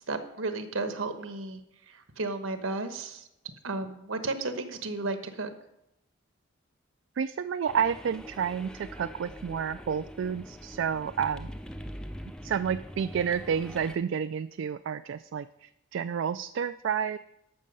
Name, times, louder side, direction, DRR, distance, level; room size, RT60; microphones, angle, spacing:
voice 1, 0.0-1.6 2.2-3.2 3.6-5.5, right 3 dB, 85° right, 8 dB, 1.2 m, -33 dB
voice 2, 7.2-11.5 12.4-17.2, right 7 dB, 70° right, 11 dB, 0.3 m, -30 dB
sound 1, 7.7-14.0, equal, 5° left, 0.4 m, -43 dB
13.0 x 6.4 x 5.4 m, 0.83 s
head